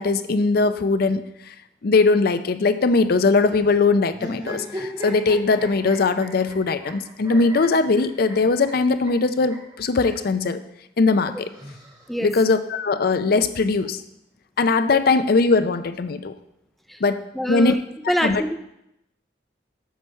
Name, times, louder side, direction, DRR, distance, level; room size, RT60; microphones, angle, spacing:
voice 1, 0.0-1.5 1.8-10.6 11.0-11.5 12.2-14.0 14.6-16.3 17.0-17.2 17.5-17.7 18.2-18.4, left 3 dB, 55° left, 10 dB, 0.5 m, -20 dB
sound 1, 4.1-10.3 11.3-12.4, equal, 25° right, 1.9 m, -38 dB
voice 2, 17.3-17.8 18.1-18.6, equal, ahead, 7 dB, 0.3 m, -24 dB
7.9 x 6.6 x 4.4 m, 0.83 s
head